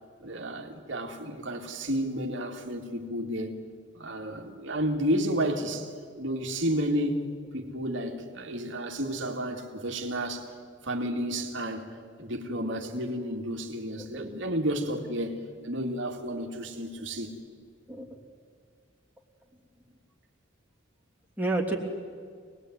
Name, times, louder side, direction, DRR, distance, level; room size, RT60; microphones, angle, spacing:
voice 1, 0.2-3.5 3.9-7.2 7.5-10.5 10.8-17.3, equal, 65° right, 2.4 m, -31 dB
voice 2, 14.0-14.4 17.9-18.2 21.4-21.8, right 2 dB, 10° right, 3.1 m, -31 dB
27.0 x 20.5 x 9.5 m
head